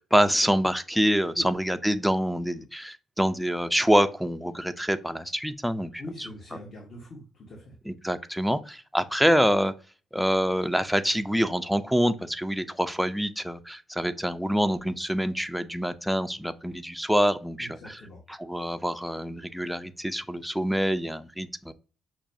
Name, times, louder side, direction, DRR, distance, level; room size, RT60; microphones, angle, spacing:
voice 1, 0.0-6.3 7.9-9.7 10.1-18.0 18.3-21.7, equal, ahead, 9 dB, 0.3 m, -26 dB
voice 2, 6.0-7.7 17.6-18.2, left 1 dB, 50° left, -2 dB, 1.1 m, -42 dB
5.9 x 2.3 x 2.6 m, 0.37 s
cardioid pair, 90°, 0 cm